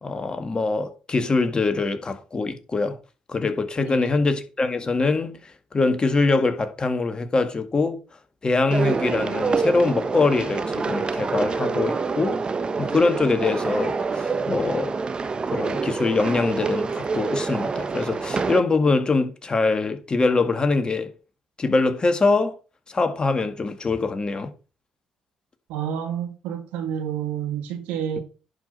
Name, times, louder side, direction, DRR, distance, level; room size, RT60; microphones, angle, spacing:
voice 1, 0.0-3.0 3.3-8.0 8.4-12.4 12.8-15.0 15.5-21.1 21.6-22.5 22.9-24.5, left 3 dB, 35° left, 1.9 m, -23 dB
voice 2, 3.8-4.1 25.7-28.2, right 8 dB, 80° right, 1.9 m, -29 dB
sound 1, 8.7-18.6, right 4 dB, 35° right, 1.1 m, -26 dB
10.5 x 5.0 x 5.5 m
hypercardioid pair, 55°, 3 cm